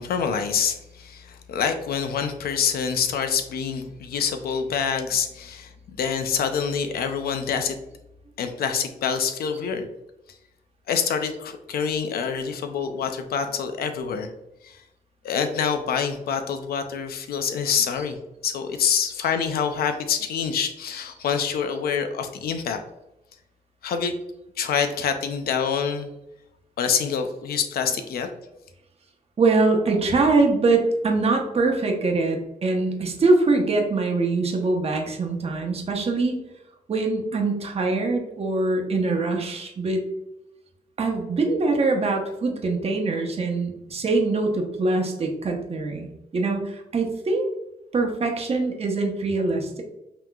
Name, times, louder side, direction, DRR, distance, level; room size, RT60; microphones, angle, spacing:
voice 1, 0.0-5.7 6.0-7.8 8.4-9.9 10.9-14.3 14.6-14.8 15.2-18.2 18.4-22.8 23.8-24.1 24.6-26.1 26.8-28.3, left 7 dB, 85° left, 7 dB, 0.6 m, -26 dB
voice 2, 29.4-36.4 36.9-40.0 41.0-47.5 47.9-49.8, right 3 dB, 40° right, 2 dB, 1.0 m, -23 dB
5.8 x 3.0 x 2.3 m, 0.89 s
cardioid pair, 85°, 15 cm